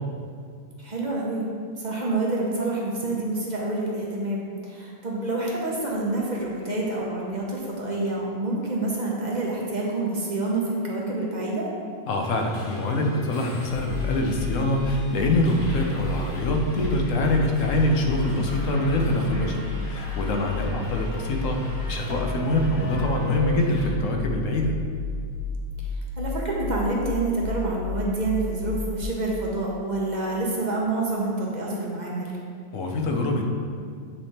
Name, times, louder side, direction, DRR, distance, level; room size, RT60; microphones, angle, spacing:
voice 1, 0.8-1.4 1.8-11.7 25.9-32.4, right 2 dB, 40° right, -3 dB, 1.0 m, -27 dB
voice 2, 12.1-24.7 32.7-33.5, left 1 dB, 90° left, 2 dB, 1.2 m, -24 dB
Subway metro underground, 12.2-23.9, equal, 55° left, 1.2 m, -40 dB
sound 1, 13.7-29.0, left 3 dB, 65° right, 2.0 m, -32 dB
8.8 x 3.4 x 4.2 m, 2.2 s
omnidirectional pair, 1.3 m